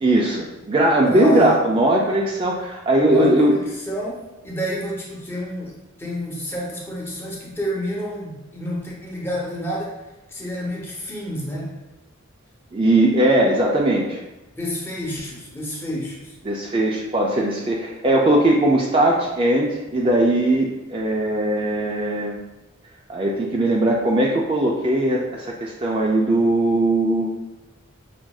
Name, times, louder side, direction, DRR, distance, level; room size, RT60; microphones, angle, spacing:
voice 1, 0.0-3.5 12.7-14.2 16.4-22.4 23.1-27.3, right 1 dB, 25° right, -2 dB, 0.3 m, -19 dB
voice 2, 1.1-1.6 3.0-9.9 10.3-11.7 14.6-16.3, equal, 10° left, -3 dB, 0.7 m, -29 dB
5.8 x 2.5 x 2.3 m, 1.1 s
head